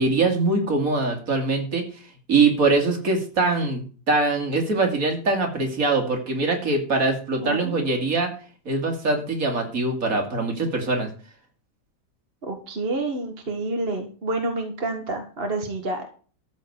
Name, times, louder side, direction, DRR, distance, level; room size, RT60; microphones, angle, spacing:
voice 1, 0.0-1.9 2.3-8.3 8.7-11.1, right 3 dB, 50° right, 3 dB, 2.8 m, -23 dB
voice 2, 7.4-8.0 12.4-16.1, right 2 dB, 35° right, 4 dB, 1.6 m, -29 dB
13.5 x 4.6 x 8.0 m, 0.39 s
omnidirectional pair, 1.9 m